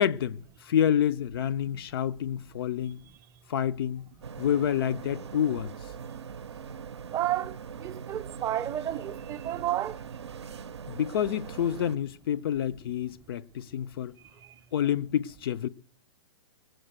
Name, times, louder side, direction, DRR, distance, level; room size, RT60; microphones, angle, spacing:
voice 1, 0.0-3.0 3.5-4.0 4.4-5.7 10.9-14.2 14.7-15.7, left 9 dB, 60° left, 0.5 m, -28 dB
sound 1, 4.2-12.0, right 6 dB, 80° right, 0.5 m, -41 dB
voice 2, 7.1-7.5 7.8-9.9, right 13 dB, 25° right, 0.5 m, -31 dB
19.5 x 7.8 x 7.9 m
hypercardioid pair, 120°, 14 cm